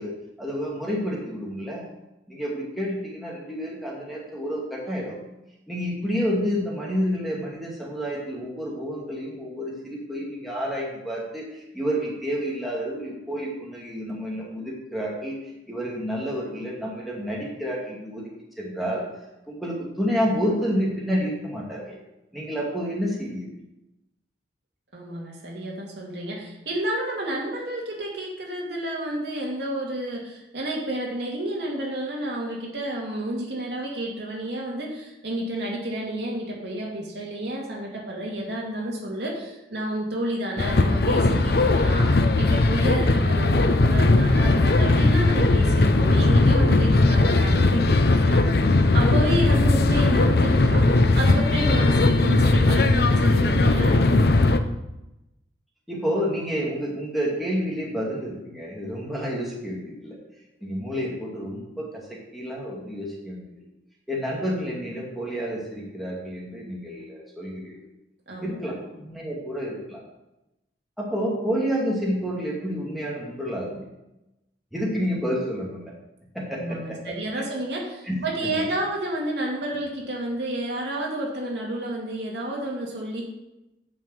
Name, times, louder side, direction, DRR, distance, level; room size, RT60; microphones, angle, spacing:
voice 1, 0.0-1.9 2.3-5.2 5.7-15.4 15.7-18.3 18.6-19.0 19.5-22.0 22.3-23.5 55.9-60.2 60.6-63.6 64.1-67.8 68.4-70.0 71.0-73.9 74.7-75.9 76.3-77.0 78.1-78.2, equal, ahead, -5 dB, 2.2 m, -29 dB
voice 2, 24.9-48.4 48.9-54.3 68.3-68.5 76.6-83.2, right 1 dB, 65° right, -2 dB, 2.6 m, -30 dB
sound 1, 40.6-54.6, left 2 dB, 55° left, 0.7 m, -19 dB
9.5 x 5.5 x 7.6 m, 0.94 s
head